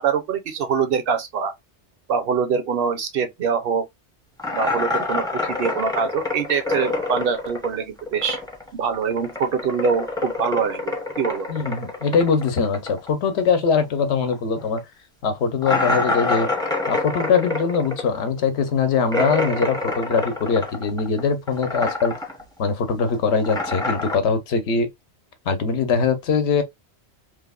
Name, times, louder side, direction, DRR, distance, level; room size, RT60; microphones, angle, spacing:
voice 1, 0.0-1.5 2.1-3.9 4.5-8.4 8.7-11.5, right 6 dB, 65° right, 0.7 m, -24 dB
sound 1, 4.4-8.7 8.9-14.0 14.3-14.4 14.8-14.9 15.6-21.2 21.5-22.4 22.7-24.2, left 3 dB, 5° left, 0.4 m, -27 dB
voice 2, 11.5-14.8 15.2-16.5 16.9-22.3 22.6-24.9 25.5-26.6, left 5 dB, 80° left, 1.0 m, -22 dB
3.2 x 2.0 x 2.2 m
omnidirectional pair, 1.2 m